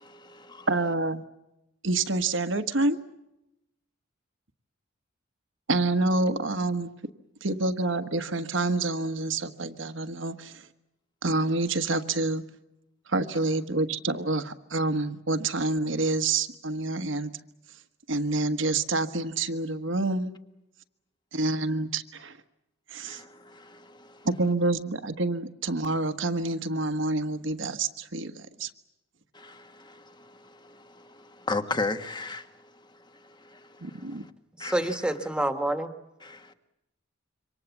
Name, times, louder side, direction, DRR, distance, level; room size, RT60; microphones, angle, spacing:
voice 1, 0.0-0.7 23.1-24.3 29.3-34.3 34.6-34.8 36.2-36.5, left 3 dB, 20° left, 1.4 m, -37 dB
voice 2, 0.7-1.2 1.8-3.0 5.7-6.9 7.4-10.6 11.2-12.4 13.1-17.3 18.1-20.3 21.3-22.3 22.9-23.2 24.2-28.7 33.8-34.3, right 2 dB, 65° right, 1.4 m, -27 dB
voice 3, 34.6-35.9, right 1 dB, 5° right, 1.7 m, -27 dB
27.0 x 25.0 x 7.3 m
head